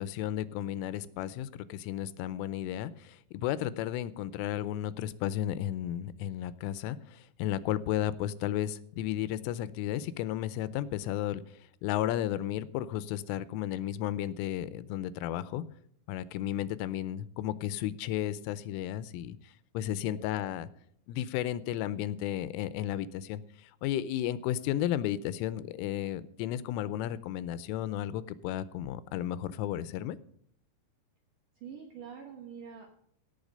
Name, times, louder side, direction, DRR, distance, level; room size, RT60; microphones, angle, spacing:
voice 1, 0.0-15.6 16.1-20.7 21.1-30.2, left 12 dB, 85° left, 16 dB, 3.2 m, -33 dB
voice 2, 19.8-20.2 31.5-32.9, right 7 dB, 75° right, 3 dB, 1.9 m, -46 dB
17.0 x 6.8 x 5.3 m, 0.67 s
omnidirectional pair, 5.8 m